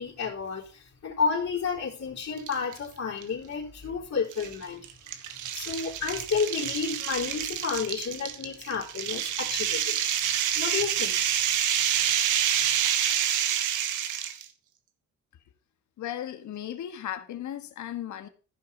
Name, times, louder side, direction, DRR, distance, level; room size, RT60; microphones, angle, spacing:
voice 1, 0.0-4.8 5.5-10.0 10.5-11.2, left 5 dB, 55° left, 4.1 m, -31 dB
sound 1, 2.4-2.8 3.2-3.3 4.3-14.4, right 10 dB, 85° right, 1.5 m, -28 dB
voice 2, 16.0-18.3, left 11 dB, 70° left, 1.7 m, -36 dB
14.5 x 5.8 x 5.3 m
cardioid pair, 90°, 30 cm